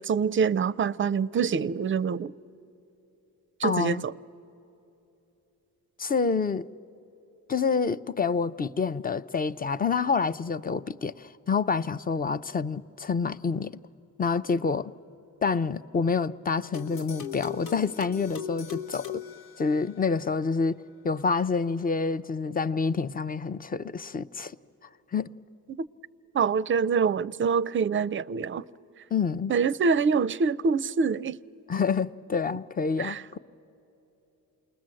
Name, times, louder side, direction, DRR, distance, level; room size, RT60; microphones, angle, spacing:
voice 1, 0.0-2.3 3.6-4.1 25.7-25.9 26.3-28.6 29.5-31.4 33.0-33.2, right 5 dB, 35° right, 0.4 m, -25 dB
voice 2, 3.6-4.0 6.0-6.7 7.5-13.7 14.2-14.9 15.4-19.2 19.6-24.6 25.1-25.3 29.1-29.5 31.7-33.4, left 5 dB, 25° left, 0.5 m, -27 dB
sound 1, 16.7-20.2, left 8 dB, 90° left, 1.1 m, -39 dB
28.0 x 20.5 x 7.6 m
cardioid pair, 85°, 35 cm